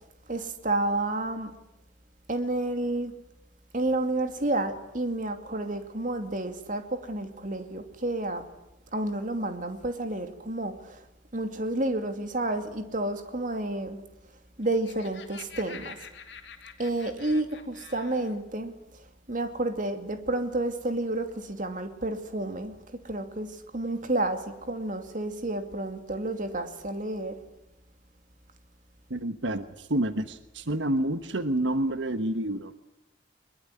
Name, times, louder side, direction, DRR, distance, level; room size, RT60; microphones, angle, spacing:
voice 1, 0.3-1.5 2.3-3.1 3.7-8.4 8.9-11.0 11.3-14.0 14.6-16.0 16.8-18.7 19.3-22.7 23.0-27.4, right 2 dB, 45° right, 2.6 m, -30 dB
Laughter, 14.5-18.3, left 6 dB, 70° left, 2.9 m, -47 dB
voice 2, 29.1-32.7, right 1 dB, 85° right, 1.3 m, -28 dB
22.5 x 22.5 x 9.9 m
head